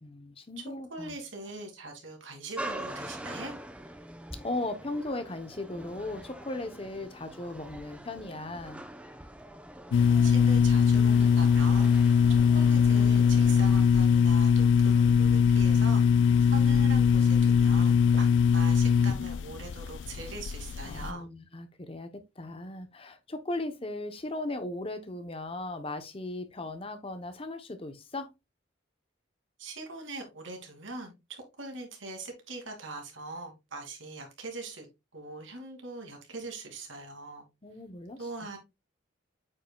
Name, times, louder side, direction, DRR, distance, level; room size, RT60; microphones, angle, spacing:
voice 1, 0.0-1.2 1.5-1.6 4.4-8.8 20.8-28.3 37.6-38.2, left 2 dB, 30° left, 0.8 m, -37 dB
voice 2, 0.6-3.6 10.0-12.0 12.3-21.3 29.6-34.9 35.1-37.5 38.2-38.6, right 2 dB, 80° right, 2.4 m, -42 dB
sound 1, 2.6-13.9, right 1 dB, 5° right, 0.7 m, -44 dB
sound 2, 9.9-21.1, left 6 dB, 70° left, 0.3 m, -22 dB
8.4 x 5.5 x 2.3 m
head